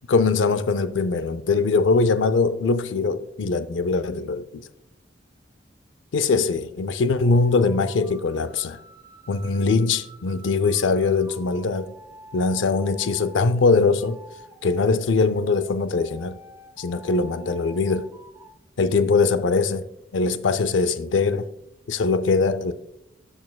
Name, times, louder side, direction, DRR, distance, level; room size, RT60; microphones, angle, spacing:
voice 1, 0.1-4.6 6.1-8.8 9.3-11.9 12.3-14.2 14.6-16.4 16.8-18.1 18.8-19.8 20.1-21.5 21.9-22.7, left 4 dB, 85° left, 0.5 m, -22 dB
sound 1, 7.1-13.4 14.0-18.5, right 1 dB, 15° right, 0.6 m, -48 dB
12.5 x 6.2 x 2.3 m
head